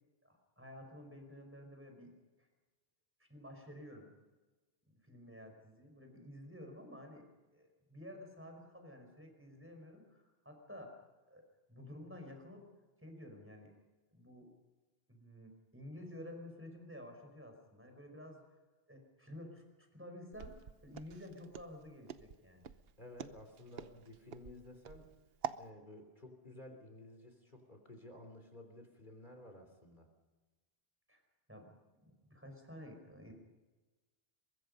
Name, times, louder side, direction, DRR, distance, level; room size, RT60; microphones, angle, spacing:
voice 1, 0.2-2.5 3.2-4.1 4.9-7.2 7.5-11.0 11.3-11.4 11.7-12.6 13.0-13.7 14.1-14.5 15.1-18.6 18.9-19.6 19.9-20.5 20.8-22.6 31.1-31.2 31.5-31.7 32.0-33.3, left 1 dB, 10° right, 4 dB, 5.1 m, -52 dB
Walk footsteps, 20.3-25.7, right 7 dB, 70° right, 1.0 m, -46 dB
voice 2, 23.0-25.1 25.6-30.1, left 1 dB, 45° left, 4 dB, 3.4 m, -54 dB
23.5 x 22.0 x 5.4 m, 1.2 s
omnidirectional pair, 1.1 m